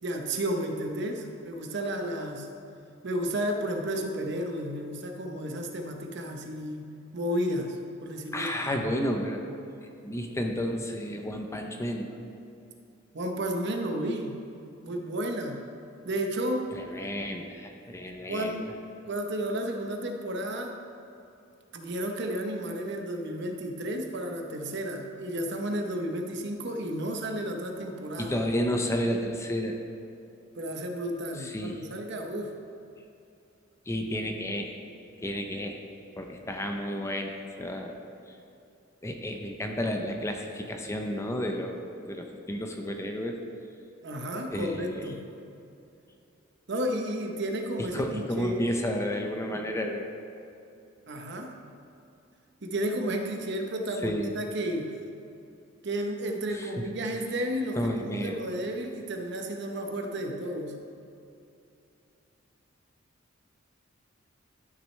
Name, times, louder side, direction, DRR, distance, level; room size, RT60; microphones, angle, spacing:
voice 1, 0.0-2.5 3.0-6.8 7.1-8.6 13.1-14.4 14.8-15.6 16.0-16.7 18.3-18.7 19.1-20.8 21.7-28.4 30.6-32.5 44.0-45.3 46.7-48.6 51.1-51.5 52.6-54.9 55.8-60.8, right 1 dB, 55° right, 3 dB, 0.8 m, -32 dB
voice 2, 8.3-9.5 9.8-12.1 16.7-18.6 28.2-29.8 31.4-31.8 33.9-34.7 35.2-35.8 36.2-37.9 39.0-41.8 42.1-43.4 44.5-45.1 47.8-50.1 54.0-54.3 56.5-56.9 57.8-58.5, equal, 15° left, 3 dB, 0.5 m, -31 dB
12.0 x 6.4 x 3.2 m, 2.7 s
head